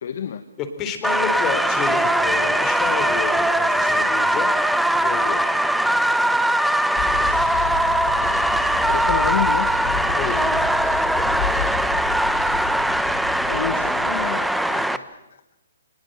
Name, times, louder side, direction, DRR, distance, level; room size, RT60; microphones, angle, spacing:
voice 1, 0.0-0.4 8.8-9.7 13.5-15.2, left 8 dB, 60° left, 9 dB, 1.4 m, -29 dB
voice 2, 0.6-4.5 5.0-5.4 10.1-10.6, left 6 dB, 25° left, 8 dB, 3.7 m, -30 dB
sound 1, 1.0-15.0, right 1 dB, ahead, 0.9 m, -21 dB
sound 2, 7.0-14.3, left 6 dB, 45° left, 4.3 m, -32 dB
23.5 x 20.0 x 8.1 m, 0.93 s
hypercardioid pair, 140°, 0 cm